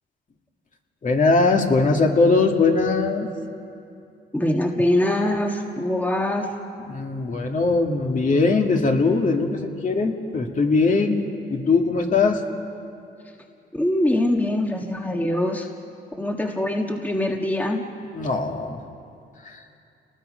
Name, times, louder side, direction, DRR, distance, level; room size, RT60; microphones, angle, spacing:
voice 1, 1.0-3.3 6.9-12.4 18.1-18.8 19.4-19.6, left 3 dB, 40° left, 2 dB, 2.3 m, -20 dB
voice 2, 4.3-6.5 13.7-15.7 16.2-17.9, left 1 dB, 10° left, 2 dB, 1.6 m, -23 dB
30.0 x 19.5 x 5.2 m, 2.6 s
cardioid pair, 90°, 20 cm